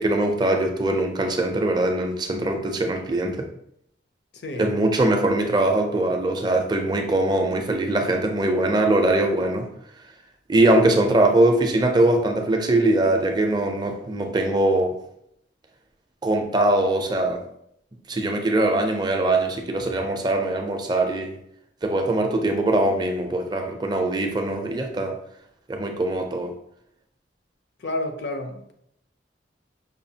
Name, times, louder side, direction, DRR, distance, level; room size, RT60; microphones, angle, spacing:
voice 1, 0.0-3.5 4.6-9.7 10.5-14.9 16.2-17.4 18.1-21.4 21.8-25.2 25.7-26.5, right 2 dB, 25° right, 3 dB, 0.4 m, -22 dB
voice 2, 4.4-4.7 18.1-18.2 27.8-28.7, left 1 dB, 60° left, 5 dB, 0.5 m, -30 dB
5.5 x 2.3 x 2.7 m, 0.74 s
head